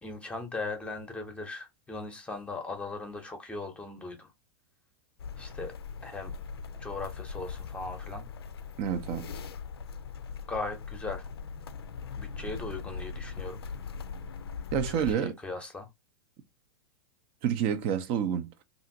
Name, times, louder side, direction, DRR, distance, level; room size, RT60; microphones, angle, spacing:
voice 1, 0.0-4.3 5.4-5.7 6.0-6.3 6.8-8.3 10.5-11.3 12.2-13.6 14.9-15.9, left 3 dB, 10° left, 0.8 m, -38 dB
sound 1, 5.2-15.2, left 5 dB, 90° left, 0.4 m, -40 dB
voice 2, 8.8-9.3 14.7-15.3 17.4-18.5, right 9 dB, 45° right, 0.6 m, -28 dB
2.8 x 2.6 x 2.6 m
hypercardioid pair, 110°, 13 cm